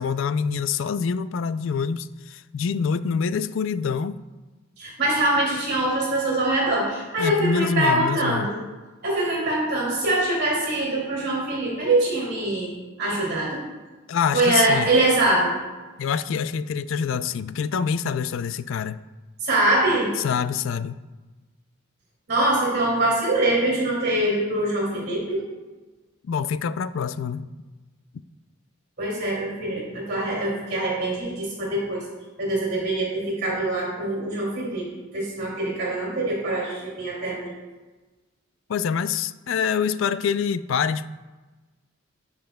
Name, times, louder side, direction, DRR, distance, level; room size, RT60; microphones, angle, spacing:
voice 1, 0.0-4.2 7.2-8.5 14.1-14.9 16.0-19.0 20.2-21.0 26.2-27.5 38.7-41.1, left 6 dB, 65° left, 0.3 m, -26 dB
voice 2, 4.8-8.5 9.0-12.7 13.0-13.6 14.3-15.5 19.4-20.1 22.3-25.4 29.0-32.0 32.4-34.9 35.1-37.5, right 1 dB, 50° right, 2.6 m, -23 dB
15.0 x 5.5 x 2.3 m
head